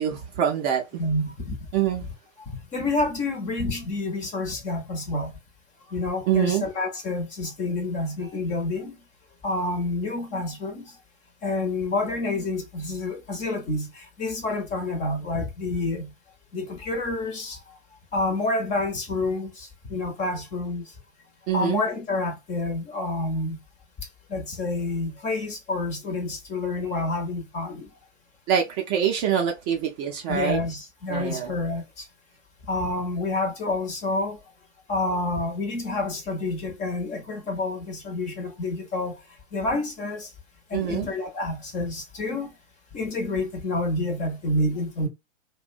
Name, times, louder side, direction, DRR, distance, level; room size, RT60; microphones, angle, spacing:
voice 1, 0.0-1.0 1.7-2.0 6.3-6.7 21.5-21.8 28.5-30.6 31.1-31.5 40.7-41.1, right 9 dB, 30° right, 0.5 m, -25 dB
voice 2, 1.0-1.6 2.5-5.3 5.9-9.0 9.4-11.0 11.4-16.1 16.5-17.8 18.1-20.9 21.5-23.6 24.3-27.9 30.3-32.1 32.7-34.4 34.9-39.2 39.5-40.3 40.7-42.5 42.9-45.1, left 2 dB, 20° left, 0.6 m, -28 dB
2.6 x 2.1 x 2.4 m
hypercardioid pair, 120°, 38 cm